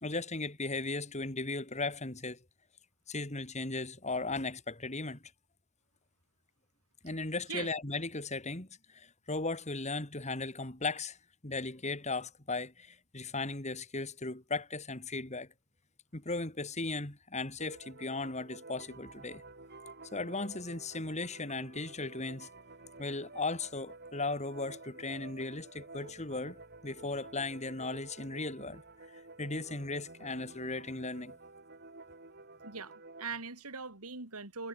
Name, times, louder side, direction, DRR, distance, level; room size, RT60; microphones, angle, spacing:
voice 1, 0.0-2.4 3.1-5.2 7.0-11.2 11.4-15.5 16.1-19.4 20.1-22.5 23.0-26.6 26.8-28.8 29.4-31.3, left 3 dB, 30° left, 2.9 m, -37 dB
sound 1, 17.6-33.3, right 3 dB, 45° right, 6.6 m, -51 dB
voice 2, 32.6-34.7, right 5 dB, 80° right, 4.1 m, -41 dB
head